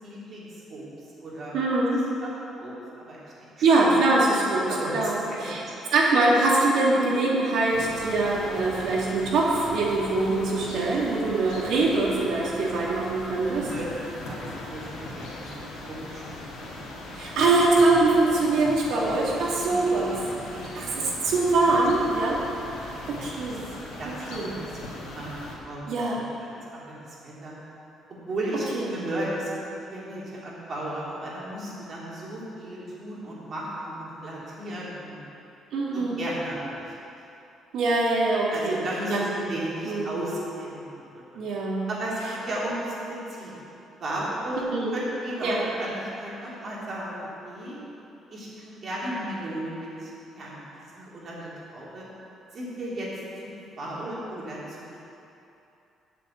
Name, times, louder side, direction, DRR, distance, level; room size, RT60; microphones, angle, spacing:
voice 1, 0.0-0.9 1.2-1.5 2.1-2.7 3.1-3.9 4.5-5.1 5.9-6.0 13.5-16.9 19.6-20.0 20.5-20.9 22.8-23.3 23.8-24.6 25.0-26.8 27.1-27.5 28.3-35.2 35.9-36.9 38.5-41.4 41.9-43.5 44.0-47.7 48.3-50.6 50.9-52.1 52.5-53.1 53.4-55.0, right 1 dB, 40° right, -6 dB, 2.9 m, -35 dB
voice 2, 1.5-2.0 3.6-5.1 5.4-5.6 5.9-13.7 17.2-20.2 20.8-22.4 23.1-23.6 24.3-24.5 25.9-26.2 28.7-28.9 35.7-36.2 37.7-39.5 39.9-40.1 41.3-41.9 44.7-44.9 45.4-45.6, right 2 dB, 65° right, -4 dB, 2.3 m, -23 dB
sound 1, 7.7-25.6, left 2 dB, 85° left, 2.4 m, -39 dB
8.2 x 6.9 x 8.5 m, 2.8 s
cardioid pair, 165°, 0 cm